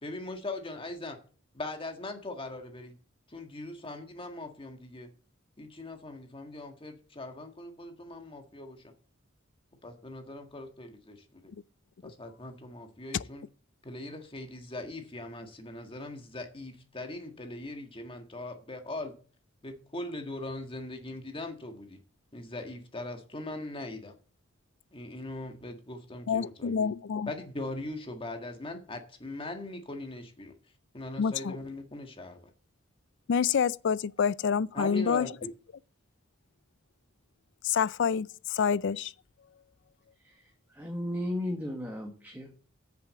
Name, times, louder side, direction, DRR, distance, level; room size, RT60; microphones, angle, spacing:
voice 1, 0.0-1.2 1.5-2.9 3.3-5.1 5.6-8.9 9.8-11.5 12.0-13.5 13.8-19.1 19.6-22.0 22.3-24.1 24.9-26.9 27.3-30.5 30.9-32.4 34.7-35.5, left 2 dB, 25° left, 1.7 m, -40 dB
voice 2, 26.3-27.3 31.2-31.6 33.3-35.3 37.6-39.1, left 6 dB, 60° left, 0.4 m, -27 dB
voice 3, 40.2-42.5, left 1 dB, 10° right, 1.5 m, -35 dB
8.2 x 7.0 x 7.6 m
head